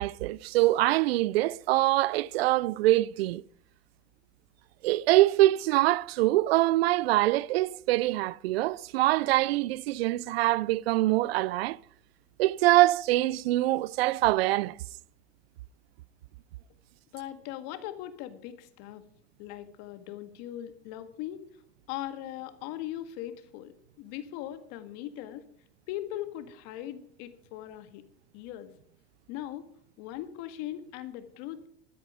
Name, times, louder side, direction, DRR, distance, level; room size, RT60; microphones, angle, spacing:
voice 1, 0.0-3.4 4.8-11.8 12.4-14.8, right 17 dB, 85° right, 0.5 m, -24 dB
voice 2, 17.1-19.1 19.4-21.4 21.9-25.5 25.9-28.0 28.3-28.7 29.3-29.7 30.0-31.7, left 13 dB, 60° left, 1.8 m, -39 dB
13.5 x 13.0 x 4.9 m
supercardioid pair, 105°, 30 cm